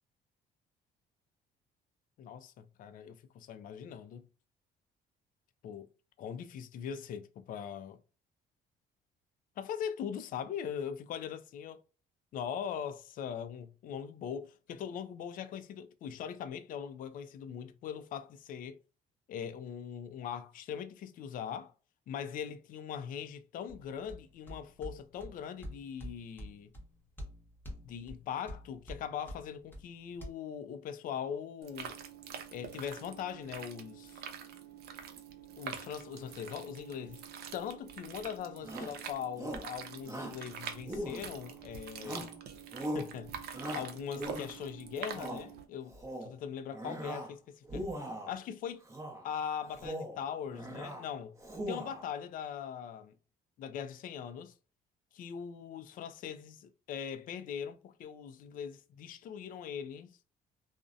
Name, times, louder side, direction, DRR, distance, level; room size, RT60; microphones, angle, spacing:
voice 1, 2.2-4.2 5.6-5.9 6.2-8.0 9.6-11.8 12.3-18.8 19.3-21.7 22.1-26.7 27.8-32.0 32.5-34.2 35.6-42.3 42.9-43.3 43.7-47.9 48.3-48.8 49.2-51.3 51.7-53.1 53.6-54.5 55.1-60.2, left 8 dB, 55° left, 0.4 m, -41 dB
sound 1, 23.7-30.3, equal, 10° left, 0.8 m, -48 dB
sound 2, 31.6-45.6, right 8 dB, 75° right, 0.5 m, -46 dB
Shout, 38.6-39.0 39.4-39.7 40.1-40.4 40.9-41.5 42.0-42.4 42.7-43.1 43.5-44.6 45.0-45.4 45.9-46.3 46.7-47.3 47.6-48.4 48.9-49.2 49.7-50.2 50.5-51.0 51.4-52.1, right 1 dB, 20° right, 0.7 m, -40 dB
2.6 x 2.0 x 2.4 m
cardioid pair, 110°, 17 cm